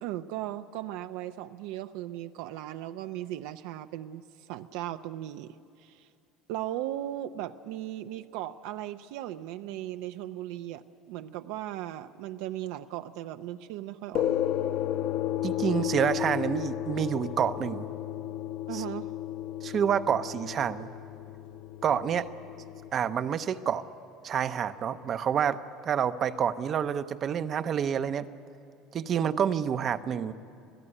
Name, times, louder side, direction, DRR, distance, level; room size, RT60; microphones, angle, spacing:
voice 1, 0.0-6.1 6.5-14.3 18.7-19.1, right 13 dB, 75° right, 8 dB, 0.6 m, -37 dB
sound 1, 14.1-22.9, left 12 dB, 60° left, 1.1 m, -33 dB
voice 2, 15.4-17.9 18.7-18.8 19.6-20.9 21.8-22.3 22.9-23.8 24.2-28.3 28.9-30.3, right 8 dB, 30° right, 12 dB, 0.7 m, -28 dB
26.0 x 16.5 x 10.0 m, 2.5 s
cardioid pair, 165°, 0 cm